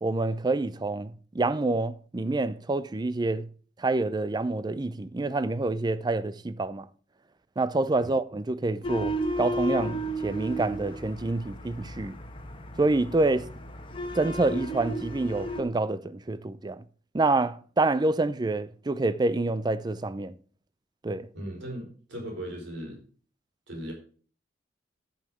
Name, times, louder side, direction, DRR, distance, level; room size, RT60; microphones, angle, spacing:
voice 1, 0.0-3.5 3.8-6.9 7.6-12.2 12.8-13.5 14.1-16.8 17.1-20.3 21.0-21.3, right 2 dB, 20° right, 0.5 m, -27 dB
sound 1, 8.8-15.6, right 1 dB, 30° left, 1.2 m, -34 dB
voice 2, 21.3-23.0 23.7-23.9, equal, 75° right, 4.1 m, -38 dB
10.5 x 5.7 x 6.1 m
head